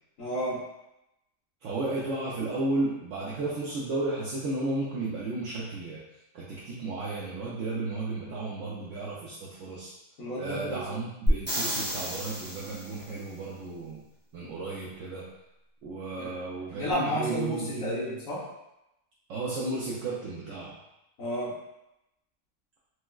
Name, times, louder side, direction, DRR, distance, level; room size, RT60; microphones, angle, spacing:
voice 1, 0.2-0.6 10.2-10.8 16.1-16.4 16.7-18.5 21.2-21.6, equal, 70° left, -7 dB, 1.3 m, -31 dB
voice 2, 1.6-6.0 6.3-9.9 10.4-14.0 14.3-15.2 15.8-18.0 19.3-20.7, right 2 dB, 70° right, -6 dB, 0.9 m, -33 dB
sound 1, 11.3-13.1 16.9-17.0, equal, 15° right, 0.5 m, -30 dB
4.3 x 2.0 x 2.2 m, 0.90 s
omnidirectional pair, 1.4 m